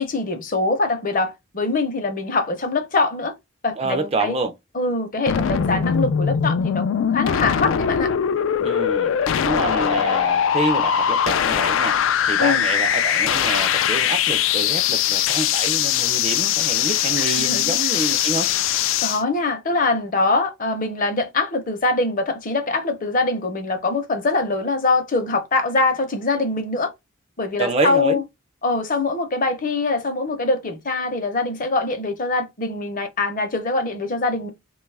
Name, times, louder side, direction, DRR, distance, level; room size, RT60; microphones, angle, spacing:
voice 1, 0.0-3.3 3.6-4.4 4.7-8.1 12.4-12.6 17.2-17.7 19.0-26.9 27.4-28.2 28.6-34.5, left 3 dB, 40° left, 0.7 m, -23 dB
voice 2, 3.8-4.5 8.6-9.1 9.4-12.0 12.3-18.5 27.6-28.2, right 3 dB, 30° right, 0.4 m, -27 dB
sound 1, 5.3-19.2, left 9 dB, 70° left, 0.3 m, -21 dB
2.9 x 2.3 x 3.2 m
head